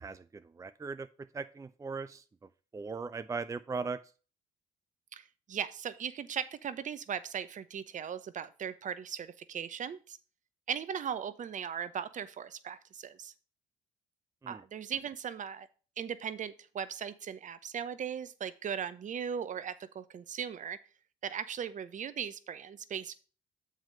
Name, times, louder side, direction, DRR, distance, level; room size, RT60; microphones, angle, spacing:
voice 1, 0.0-2.2 2.7-4.0 14.4-14.6, right 4 dB, 20° right, 12 dB, 0.5 m, -39 dB
voice 2, 5.1-10.2 10.7-13.3 14.5-15.7 16.0-20.8 21.2-23.1, right 8 dB, 50° right, 14 dB, 0.8 m, -38 dB
7.4 x 4.9 x 5.4 m, 0.36 s
hypercardioid pair, 50°, 17 cm